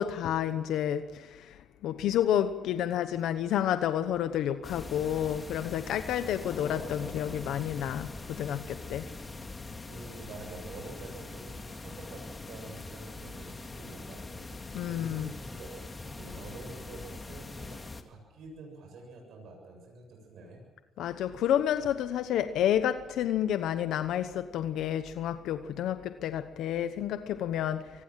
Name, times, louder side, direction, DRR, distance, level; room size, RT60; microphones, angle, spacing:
voice 1, 0.0-9.1 14.7-15.3 21.0-28.0, left 10 dB, 85° left, 10 dB, 1.0 m, -30 dB
sound 1, 4.6-18.0, left 3 dB, 25° left, 2.3 m, -42 dB
voice 2, 9.8-14.5 14.8-17.8 18.0-20.6, right 3 dB, 75° right, 1 dB, 7.6 m, -47 dB
24.5 x 19.5 x 7.5 m, 1.2 s
cardioid pair, 90°, 0 cm